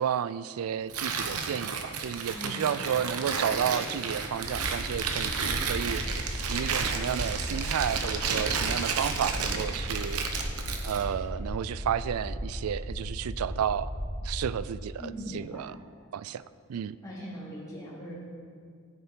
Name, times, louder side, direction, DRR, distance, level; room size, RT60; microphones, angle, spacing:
voice 1, 0.0-6.0 6.5-10.5 10.8-13.9 14.2-15.8 16.1-17.0, right 8 dB, 70° right, 17 dB, 0.3 m, -32 dB
Tearing, 0.9-11.1, right 5 dB, 90° right, 0.9 m, -32 dB
voice 2, 2.3-3.0 15.0-15.7 17.0-18.2, equal, 15° left, -8 dB, 3.1 m, -40 dB
sound 1, 4.4-14.6, equal, 35° left, 1.9 m, -36 dB
14.0 x 7.1 x 4.5 m, 2.2 s
head